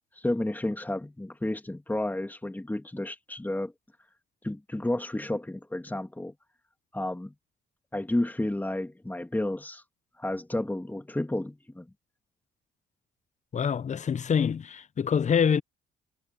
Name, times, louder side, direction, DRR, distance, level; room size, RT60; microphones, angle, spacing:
voice 1, 0.2-3.7 4.4-6.3 6.9-7.3 7.9-9.8 10.2-11.9, left 1 dB, 10° left, 2.6 m, -31 dB
voice 2, 13.5-15.6, left 7 dB, 35° left, 0.6 m, -25 dB
cardioid pair, 90°, 20 cm